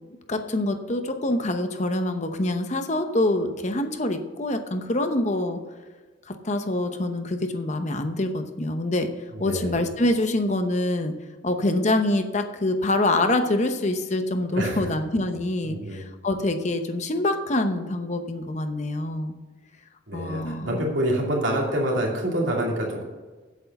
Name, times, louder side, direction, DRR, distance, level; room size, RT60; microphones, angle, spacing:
voice 1, 0.3-5.6 6.3-9.1 9.4-11.1 11.4-19.4 20.1-20.8, left 1 dB, 35° left, 7 dB, 0.8 m, -25 dB
voice 2, 9.4-9.8 14.5-14.9 15.7-16.1 20.1-23.0, right 1 dB, 75° right, -2 dB, 2.6 m, -26 dB
8.3 x 8.1 x 7.0 m, 1.3 s
head